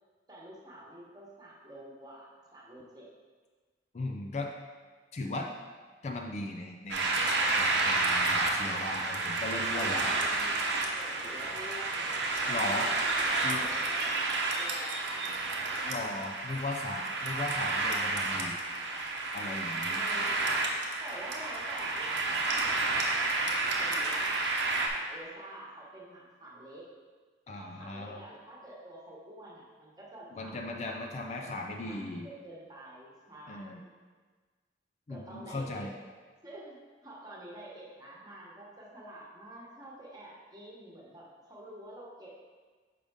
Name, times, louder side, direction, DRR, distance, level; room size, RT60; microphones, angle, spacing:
voice 1, 0.3-3.1 9.9-16.3 16.5-17.4 19.9-20.6 21.0-24.4 24.9-26.9 27.6-33.9 35.1-35.9 36.4-42.3, right 1 dB, 20° right, -4 dB, 1.2 m, -48 dB
voice 2, 3.9-4.5 5.1-5.5 6.0-7.3 7.5-10.0 12.5-12.9 13.3-13.7 15.8-18.6 19.3-20.0 27.5-28.3 30.3-32.3 33.5-33.8 35.1-35.9, left 2 dB, 40° left, 2 dB, 0.4 m, -37 dB
sound 1, 6.9-24.9, right 3 dB, 75° right, 0.8 m, -30 dB
6.6 x 5.0 x 3.5 m, 1.5 s
head